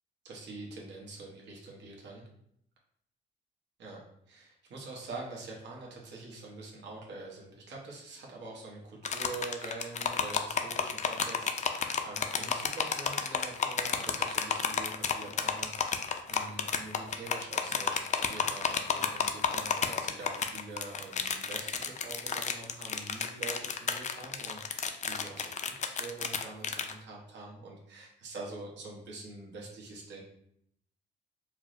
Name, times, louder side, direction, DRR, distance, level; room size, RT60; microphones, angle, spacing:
voice 1, 0.2-2.2 3.8-4.0 4.3-30.2, right 3 dB, 65° right, -2 dB, 0.9 m, -45 dB
sound 1, 9.0-26.9, left 6 dB, 35° left, 0.4 m, -31 dB
4.5 x 2.0 x 2.5 m, 0.73 s
cardioid pair, 90°, 20 cm